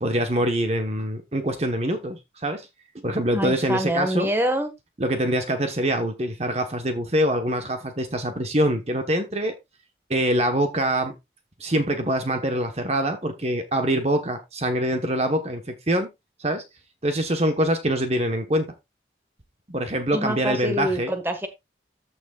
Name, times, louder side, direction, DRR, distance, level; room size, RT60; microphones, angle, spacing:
voice 1, 0.0-2.7 2.9-4.3 5.0-9.5 10.1-11.1 11.6-16.1 16.4-16.6 17.0-18.7 19.7-21.1, right 1 dB, 35° right, 1.1 m, -24 dB
voice 2, 3.3-4.7 20.1-21.5, equal, 10° right, 1.4 m, -25 dB
14.0 x 6.2 x 2.4 m
head